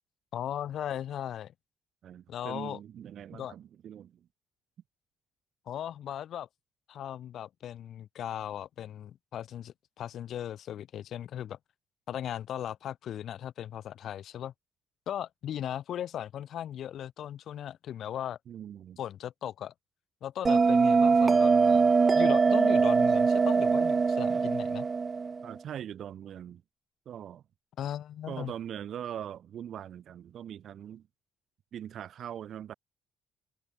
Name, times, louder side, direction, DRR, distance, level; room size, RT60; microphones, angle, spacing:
voice 1, 0.3-1.5 2.3-2.8 3.3-3.5 5.7-6.5 6.9-11.6 12.1-14.5 15.1-18.4 19.0-19.7 20.2-24.9 27.8-28.5, left 10 dB, 70° left, 1.1 m, -37 dB
voice 2, 2.0-4.3 18.5-19.0 25.4-26.6 27.1-27.4 28.3-31.1 31.7-32.7, right 10 dB, 65° right, 2.4 m, -41 dB
Bell, 20.4-25.5, right 5 dB, 35° right, 0.6 m, -23 dB
cardioid pair, 90°, 0 cm